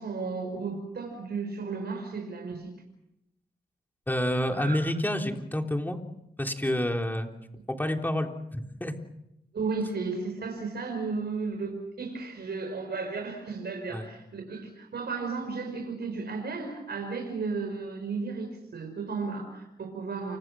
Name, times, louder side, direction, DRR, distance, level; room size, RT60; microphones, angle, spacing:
voice 1, 0.0-2.7 4.5-4.8 9.5-20.4, right 4 dB, 75° right, 3 dB, 5.7 m, -34 dB
voice 2, 4.1-6.0 6.4-7.3 7.7-8.9 13.9-14.0, left 1 dB, 10° left, 3 dB, 3.6 m, -28 dB
29.5 x 25.5 x 6.3 m, 0.85 s
cardioid pair, 75°, 17 cm